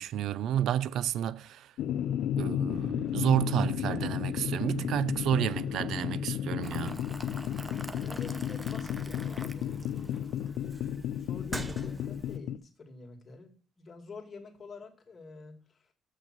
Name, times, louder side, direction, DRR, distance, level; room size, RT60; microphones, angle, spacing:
voice 1, 0.0-1.7 2.4-7.0, right 11 dB, 80° right, 0.3 m, -30 dB
sound 1, 1.8-12.6, left 10 dB, 85° left, 0.4 m, -33 dB
sound 2, 2.7-10.2, left 3 dB, 20° left, 1.8 m, -48 dB
Boiling, 6.6-12.4, right 2 dB, 20° right, 0.8 m, -44 dB
voice 2, 7.8-13.5 13.8-15.8, left 3 dB, 40° left, 2.3 m, -48 dB
7.7 x 6.3 x 5.9 m
cardioid pair, 90°, 0 cm